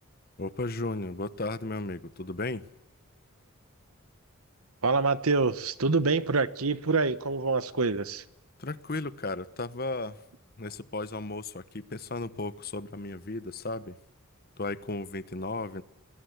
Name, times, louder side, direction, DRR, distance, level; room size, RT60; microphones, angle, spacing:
voice 1, 0.4-2.7 8.6-10.2 10.6-14.0 14.6-15.8, left 2 dB, 45° left, 14 dB, 1.1 m, -35 dB
voice 2, 4.8-8.2, right 3 dB, 80° right, 13 dB, 1.3 m, -26 dB
28.0 x 20.0 x 8.2 m, 0.89 s
head